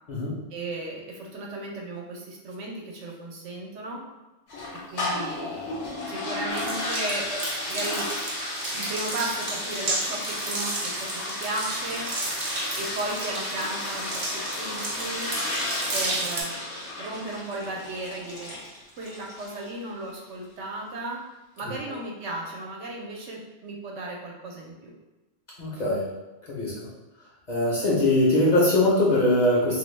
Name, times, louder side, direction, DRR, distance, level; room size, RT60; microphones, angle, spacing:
voice 1, 0.5-4.0 4.9-5.8 6.1-7.3 7.7-8.1 8.7-12.1 12.8-15.3 15.9-16.6 17.0-18.6 19.0-21.2 21.6-24.9, right 2 dB, 80° right, -1 dB, 0.9 m, -35 dB
sound 1, 4.5-19.7, left 1 dB, 65° left, 1.0 m, -33 dB
sound 2, 6.5-16.4, right 2 dB, 55° right, 0.7 m, -33 dB
voice 2, 25.6-26.1 26.5-26.7 27.5-29.8, left 1 dB, 45° left, -6 dB, 0.7 m, -22 dB
2.5 x 2.1 x 3.1 m, 1.1 s
omnidirectional pair, 1.2 m